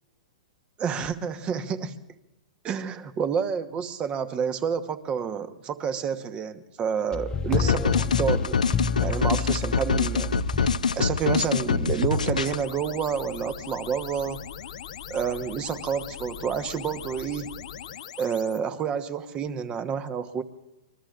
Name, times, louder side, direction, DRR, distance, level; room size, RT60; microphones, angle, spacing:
voice 1, 0.8-2.0 2.6-8.6 9.0-10.3 10.6-10.7 10.9-14.4 15.1-17.5 18.2-20.4, right 7 dB, 25° right, 11 dB, 1.1 m, -29 dB
sound 1, 7.1-10.8 11.4-11.5, left 5 dB, 20° left, 0.4 m, -29 dB
sound 2, 7.5-12.6, left 5 dB, 85° left, 0.6 m, -25 dB
sound 3, 11.8-18.6, left 9 dB, 70° left, 1.2 m, -40 dB
25.5 x 20.5 x 2.5 m, 0.94 s
hypercardioid pair, 120°, 4 cm